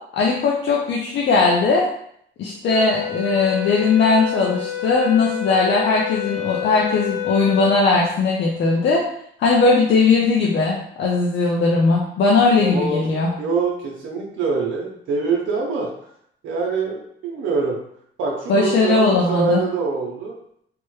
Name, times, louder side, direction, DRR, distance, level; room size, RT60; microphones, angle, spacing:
voice 1, 0.1-1.9 2.4-9.0 9.4-13.3 18.5-19.6, left 3 dB, 65° left, -3 dB, 0.6 m, -18 dB
sound 1, 2.7-7.8, left 10 dB, 30° left, 0.7 m, -28 dB
voice 2, 12.6-13.1 13.4-15.9 16.4-17.0 17.2-17.8 18.2-20.4, right 4 dB, 80° right, -2 dB, 0.7 m, -24 dB
3.3 x 2.1 x 3.1 m, 0.68 s
cardioid pair, 90°, 20 cm